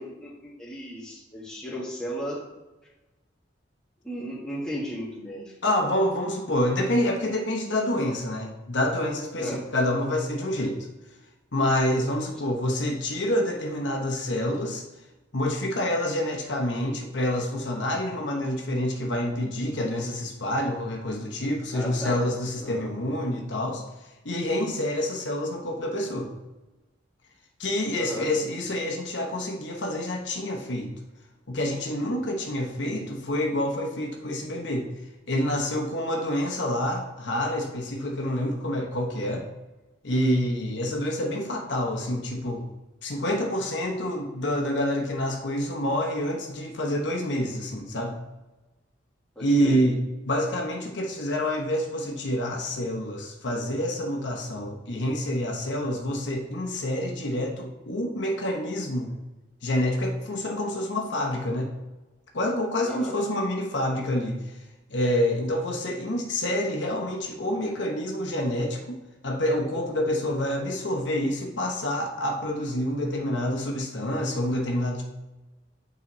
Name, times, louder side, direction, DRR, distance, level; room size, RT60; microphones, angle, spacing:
voice 1, 0.0-2.4 4.0-5.5 9.4-9.7 21.7-22.2 22.6-22.9 28.0-28.3 49.3-49.8 62.8-63.2, equal, 5° left, -7 dB, 1.7 m, -35 dB
voice 2, 5.6-10.8 11.5-14.8 15.3-23.8 24.2-26.3 27.6-30.9 31.5-34.9 35.3-39.4 40.0-42.6 43.0-48.2 49.4-50.0 50.2-59.2 59.6-61.7 62.3-64.5 64.9-69.0 69.2-75.0, left 1 dB, 80° left, 1 dB, 1.0 m, -27 dB
8.5 x 4.0 x 3.1 m, 1.1 s
head